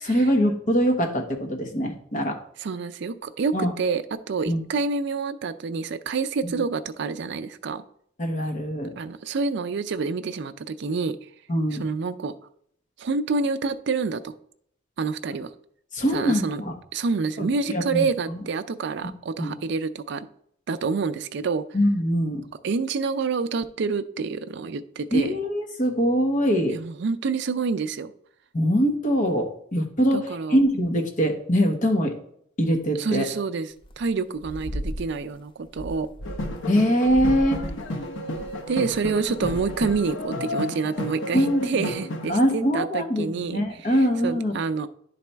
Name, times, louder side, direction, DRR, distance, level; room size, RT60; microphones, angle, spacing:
voice 1, 0.0-2.4 3.5-3.7 4.5-4.6 6.4-6.5 8.2-8.9 11.5-11.8 15.9-16.7 17.4-18.4 19.4-19.5 21.7-22.4 25.1-26.8 28.5-32.1 32.6-33.2 36.7-37.6 41.3-41.7 42.3-44.5, equal, 40° left, 3 dB, 1.1 m, -23 dB
voice 2, 2.6-7.8 9.0-11.2 11.8-12.3 13.0-14.3 15.0-15.5 16.1-16.6 16.9-20.3 20.7-21.7 22.6-25.4 26.7-28.1 30.1-30.6 32.9-36.1 38.7-43.9 44.2-44.9, right 4 dB, 60° right, 10 dB, 0.4 m, -27 dB
sound 1, 33.8-34.1 34.4-35.3 35.6-36.8 37.0-40.2, equal, 25° left, 0.4 m, -36 dB
sound 2, 36.2-42.3, left 1 dB, 75° left, 0.9 m, -32 dB
10.5 x 4.2 x 3.4 m, 0.68 s
head